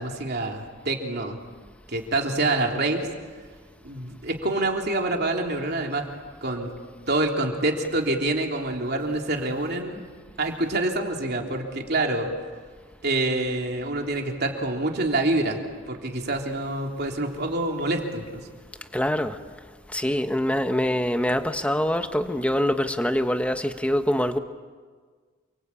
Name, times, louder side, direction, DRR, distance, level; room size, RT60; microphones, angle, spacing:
voice 1, 0.0-1.4 1.9-3.1 3.8-6.1 6.4-6.7 7.1-10.0 10.4-12.3 13.0-15.6 15.9-18.5, right 2 dB, 50° right, 2 dB, 3.4 m, -26 dB
voice 2, 18.9-19.4 19.9-24.4, equal, 5° left, 7 dB, 1.2 m, -24 dB
29.0 x 23.5 x 8.6 m, 1.5 s
head